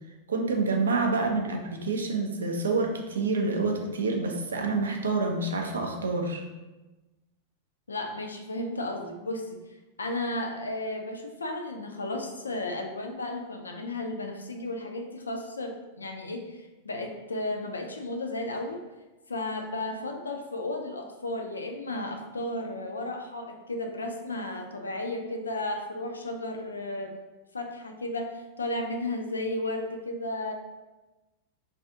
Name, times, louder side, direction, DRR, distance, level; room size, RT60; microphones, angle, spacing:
voice 1, 0.3-6.4, right 3 dB, 70° right, 3 dB, 0.4 m, -27 dB
voice 2, 7.9-9.6 10.0-18.8 19.3-27.2 27.5-30.5, left 2 dB, 75° left, 3 dB, 0.3 m, -34 dB
2.4 x 2.3 x 2.7 m, 1.1 s
figure-of-eight pair, 90°, 0 cm